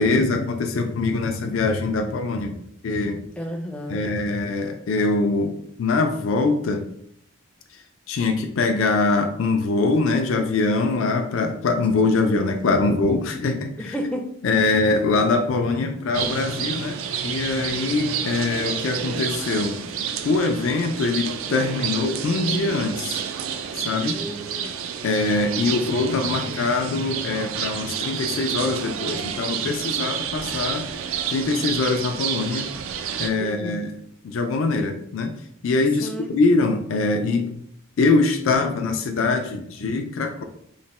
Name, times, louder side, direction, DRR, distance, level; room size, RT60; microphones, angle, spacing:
voice 1, 0.0-2.6 2.8-3.2 3.9-6.9 8.1-13.9 14.4-19.8 20.2-23.2 23.8-24.2 25.0-30.9 31.3-32.7 33.2-33.9 34.2-35.4 35.6-37.6 38.0-40.4, left 3 dB, 70° left, 5 dB, 0.4 m, -23 dB
voice 2, 3.4-4.0 13.8-14.3 24.1-24.7 33.4-33.9 36.0-36.3, equal, 5° left, 2 dB, 0.4 m, -32 dB
sound 1, 16.1-33.3, right 8 dB, 75° right, 0.3 m, -29 dB
3.2 x 2.1 x 4.0 m, 0.70 s
head